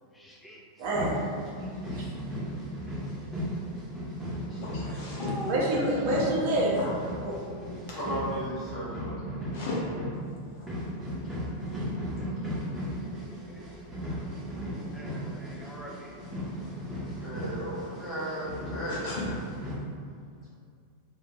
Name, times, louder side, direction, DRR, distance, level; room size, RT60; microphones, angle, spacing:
voice 1, 0.1-0.6 5.2-5.8 13.5-13.6 14.9-16.1, left 1 dB, 10° left, -2 dB, 0.4 m, -41 dB
sound 1, 0.8-19.8, equal, 10° right, 0.9 m, -36 dB
voice 2, 0.8-1.2 1.9-2.1 5.5-6.8 7.2-7.3 14.6-14.9, right 1 dB, 50° right, -5 dB, 0.7 m, -27 dB
voice 3, 4.3-5.5 6.8-6.9 7.9-8.0 9.5-9.8 10.5-10.7 11.0-11.3 11.8-12.0 14.0-14.7 16.6-16.7 17.2-17.3 18.9-19.2 20.0-20.1, left 3 dB, 50° left, -6 dB, 0.6 m, -39 dB
voice 4, 7.9-9.2 17.1-19.0, equal, 30° left, -8 dB, 1.0 m, -35 dB
2.6 x 2.3 x 2.8 m, 2.2 s
figure-of-eight pair, 90°, 0 cm